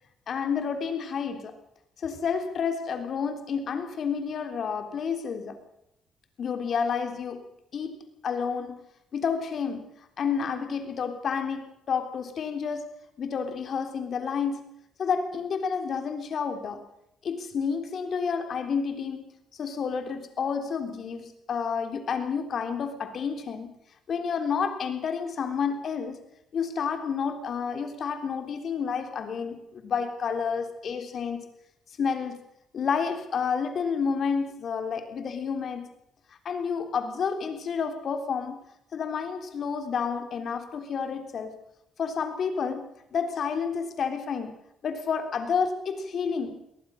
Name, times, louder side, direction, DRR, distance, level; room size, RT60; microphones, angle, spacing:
voice 1, 0.3-1.6 2.0-5.6 6.4-8.8 9.1-9.9 10.2-12.9 13.2-14.7 15.0-16.9 17.2-23.7 24.1-26.2 26.5-31.4 32.0-32.4 32.7-35.9 36.4-38.6 38.9-41.5 42.0-44.5 44.8-46.6, left 6 dB, 55° left, 7 dB, 3.6 m, -30 dB
22.5 x 18.5 x 6.5 m, 0.78 s
cardioid pair, 90°, 0 cm